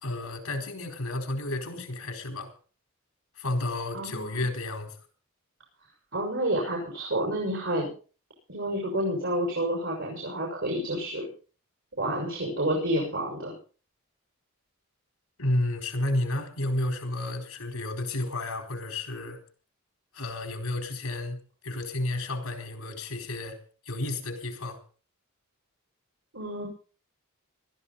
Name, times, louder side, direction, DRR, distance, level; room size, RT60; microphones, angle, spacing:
voice 1, 0.0-2.5 3.4-4.9 15.4-19.4 20.1-21.4 21.6-23.6 23.9-24.8, left 1 dB, 85° left, 4 dB, 4.5 m, -31 dB
voice 2, 3.9-4.5 6.1-7.9 8.5-11.3 12.0-13.5 26.3-26.7, right 1 dB, 65° right, -1 dB, 6.6 m, -29 dB
20.5 x 13.5 x 4.2 m, 0.39 s
head